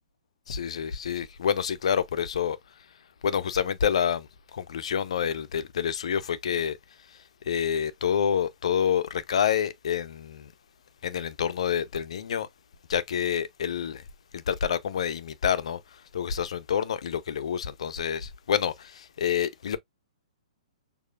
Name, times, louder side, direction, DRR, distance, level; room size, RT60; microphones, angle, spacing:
voice 1, 0.5-2.6 3.2-6.8 7.5-10.5 11.0-12.5 12.9-14.0 14.3-15.8 16.1-19.8, left 8 dB, 60° left, 0.7 m, -28 dB
6.5 x 2.8 x 2.4 m
figure-of-eight pair, 120°, 4 cm